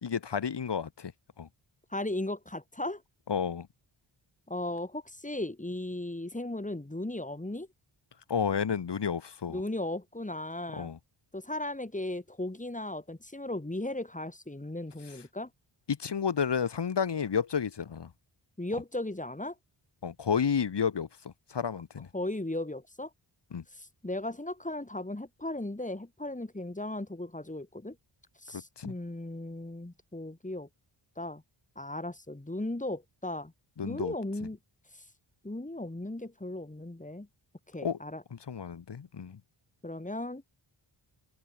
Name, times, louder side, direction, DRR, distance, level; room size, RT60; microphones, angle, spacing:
voice 1, 0.0-1.1 1.4-1.5 3.3-3.7 8.3-9.6 10.7-11.0 15.9-18.1 20.0-21.1 21.5-22.1 23.5-23.6 28.8-28.9 33.8-34.1 37.8-38.0 38.3-39.4, left 7 dB, 55° left, 1.7 m, -31 dB
voice 2, 1.9-3.0 4.5-7.7 9.5-10.9 11.3-15.5 18.6-19.5 22.1-23.1 23.7-28.0 28.4-30.7 31.2-31.4 31.8-33.5 33.8-34.6 35.4-37.3 37.7-38.2 39.8-40.4, left 1 dB, 15° left, 6.3 m, -36 dB
wide cardioid pair, 100°, 50 cm